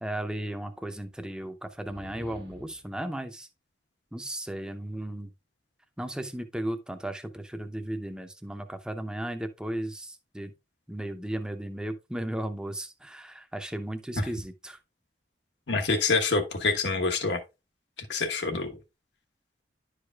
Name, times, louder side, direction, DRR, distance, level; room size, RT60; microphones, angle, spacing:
voice 1, 0.0-3.5 4.1-5.3 6.0-10.5 10.9-14.8, right 1 dB, 5° right, 0.6 m, -35 dB
sound 1, 1.7-2.9, equal, 60° right, 1.3 m, -46 dB
voice 2, 15.7-17.4 18.1-18.8, left 3 dB, 80° left, 1.2 m, -26 dB
11.0 x 4.9 x 2.3 m
head